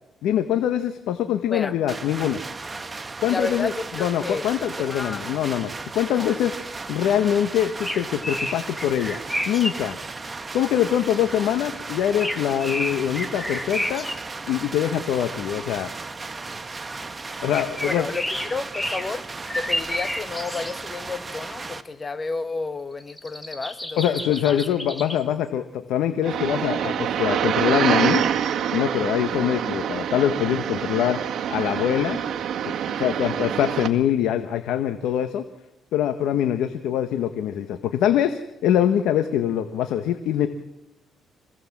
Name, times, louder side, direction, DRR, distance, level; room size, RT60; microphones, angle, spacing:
voice 1, 0.2-2.4 3.2-6.5 6.9-9.2 9.4-10.0 10.5-14.0 14.5-15.9 17.4-18.1 24.0-28.2 28.7-31.2 31.5-32.2 32.6-35.4 35.9-40.5, left 10 dB, 85° left, 1.4 m, -24 dB
sound 1, 1.9-21.8, right 3 dB, 25° right, 1.4 m, -35 dB
voice 2, 3.2-5.2 6.1-6.3 17.8-19.3 19.5-24.2 24.5-24.6, left 3 dB, 30° left, 1.4 m, -31 dB
sound 2, 7.6-9.7 10.0-10.1 12.0-14.2 17.5-19.1 19.5-20.7 21.1-21.2 23.0-25.2, equal, 10° left, 2.7 m, -30 dB
sound 3, 26.2-33.9, right 9 dB, 70° right, 2.0 m, -26 dB
26.5 x 17.0 x 7.5 m
cardioid pair, 90°, 0 cm